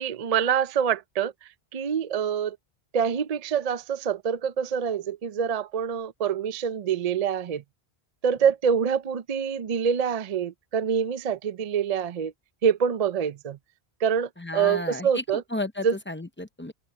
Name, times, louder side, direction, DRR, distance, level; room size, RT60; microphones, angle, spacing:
voice 1, 0.0-1.3 1.7-2.6 2.9-7.6 8.2-12.3 12.6-13.6 14.0-15.4 15.8-15.9, right 7 dB, 45° right, 0.6 m, -26 dB
voice 2, 14.4-15.2 15.5-16.7, left 2 dB, 15° left, 0.6 m, -33 dB
open air
omnidirectional pair, 1.1 m